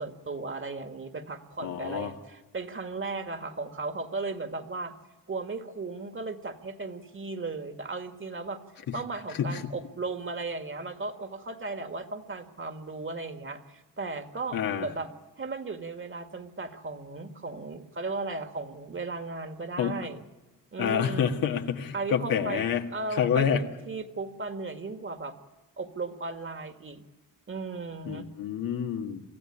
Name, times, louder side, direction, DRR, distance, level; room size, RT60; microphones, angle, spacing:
voice 1, 0.0-4.9 5.3-8.6 8.9-15.1 15.4-20.2 20.7-21.3 21.9-22.6 22.9-25.4 25.8-27.0 27.5-28.3, right 3 dB, 35° right, 8 dB, 1.9 m, -36 dB
voice 2, 1.6-2.1 9.4-9.6 14.5-14.9 19.8-19.9 20.8-22.8 23.2-23.6 28.1-29.2, left 8 dB, 85° left, 4 dB, 1.8 m, -28 dB
24.5 x 14.5 x 9.9 m, 1.2 s
cardioid pair, 80°, 33 cm